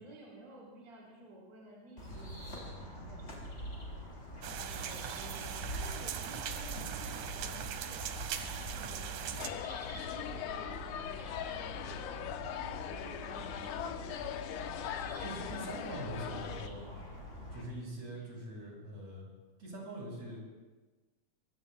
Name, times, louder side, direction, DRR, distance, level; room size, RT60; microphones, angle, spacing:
voice 1, 0.0-4.2 4.5-12.1 12.4-14.6 18.1-18.3, right 2 dB, 30° right, -5 dB, 4.3 m, -54 dB
sound 1, 2.0-17.6, equal, 20° left, 5.2 m, -45 dB
sound 2, 4.4-9.5, right 9 dB, 75° right, 2.3 m, -40 dB
sound 3, 9.4-16.7, left 10 dB, 85° left, 2.3 m, -40 dB
voice 2, 15.2-17.0 17.5-19.3 19.6-20.5, right 1 dB, 55° right, -3 dB, 7.2 m, -43 dB
25.5 x 24.0 x 2.2 m, 1.3 s
omnidirectional pair, 3.5 m